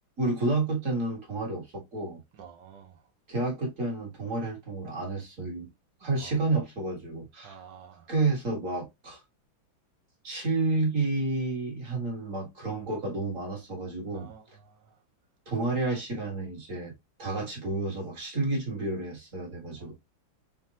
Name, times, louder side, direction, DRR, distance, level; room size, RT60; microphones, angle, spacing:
voice 1, 0.2-2.2 3.3-5.7 6.0-7.6 8.1-9.2 10.2-14.3 15.5-16.9 17.2-19.9, right 3 dB, 40° right, 2.0 m, -30 dB
voice 2, 2.4-3.0 6.0-6.4 7.4-8.1 14.1-14.8 19.8-19.9, right 7 dB, 65° right, 1.5 m, -49 dB
4.4 x 3.8 x 2.8 m
omnidirectional pair, 2.1 m